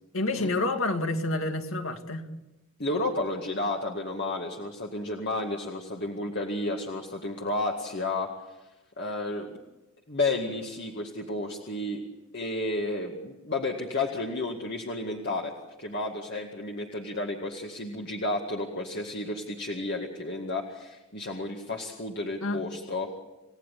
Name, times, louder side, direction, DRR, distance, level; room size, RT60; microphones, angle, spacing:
voice 1, 0.1-2.3 22.4-22.6, left 2 dB, 65° left, 5 dB, 2.2 m, -28 dB
voice 2, 2.8-8.3 9.0-9.6 10.1-12.0 12.3-15.5 15.8-23.2, left 2 dB, 50° left, 0 dB, 2.1 m, -32 dB
29.0 x 16.5 x 8.5 m, 1.1 s
head